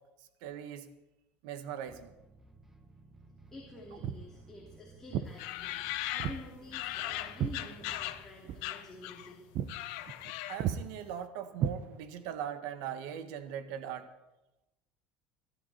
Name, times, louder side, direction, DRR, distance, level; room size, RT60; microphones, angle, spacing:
voice 1, 0.2-0.9 1.4-2.1 10.5-14.1, right 9 dB, 70° right, 9 dB, 1.7 m, -40 dB
sound 1, 1.8-8.2, right 3 dB, 10° right, 1.4 m, -57 dB
voice 2, 3.5-9.4, left 2 dB, 10° left, -3 dB, 3.0 m, -49 dB
Walk footsteps, 4.0-4.3 5.1-5.3 6.2-6.4 6.7-8.2 8.5-8.7 9.1-9.2 9.5-9.8 10.1-10.3 10.6-10.8 11.6-12.3, right 9 dB, 40° right, 0.8 m, -34 dB
sound 2, 5.4-8.3 8.6-9.3 9.6-10.8, left 15 dB, 70° left, 1.0 m, -38 dB
24.0 x 12.5 x 4.3 m, 0.99 s
cardioid pair, 165°, 4 cm